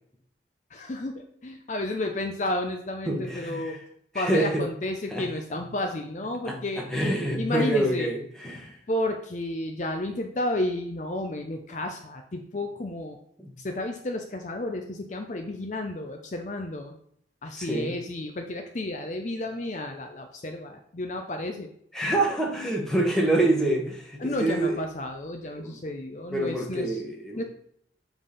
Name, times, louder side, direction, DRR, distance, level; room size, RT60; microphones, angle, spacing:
voice 1, 0.7-3.8 4.1-6.9 7.4-8.1 8.9-13.2 13.6-16.9 17.4-21.7 24.2-27.0 27.4-27.5, left 1 dB, 40° left, 4 dB, 0.6 m, -32 dB
voice 2, 3.1-3.8 4.1-4.6 5.1-5.3 6.4-6.6 6.9-8.7 13.4-13.5 17.5-17.9 21.9-24.8 25.5-25.8 26.3-27.4, right 1 dB, 5° left, -1 dB, 1.1 m, -26 dB
7.2 x 3.5 x 5.5 m, 0.67 s
head